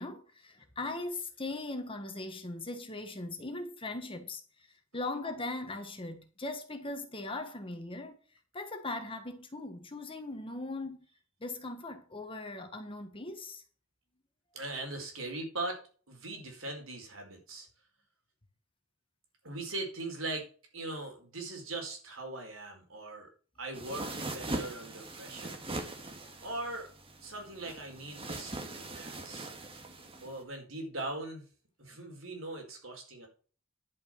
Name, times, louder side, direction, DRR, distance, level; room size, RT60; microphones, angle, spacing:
voice 1, 0.0-4.4 4.9-8.2 8.5-11.0 11.4-13.6 25.8-25.9 26.2-26.4 29.5-29.6 30.0-30.2, left 2 dB, 25° left, 1.5 m, -39 dB
voice 2, 14.5-15.8 16.1-17.7 19.4-20.5 20.7-23.3 23.6-24.1 24.3-25.6 26.4-26.9 27.2-29.5 30.2-31.4 31.8-33.3, right 2 dB, 70° right, 4.8 m, -40 dB
sound 1, 23.7-30.4, right 2 dB, 25° right, 1.8 m, -41 dB
11.0 x 6.3 x 6.5 m
head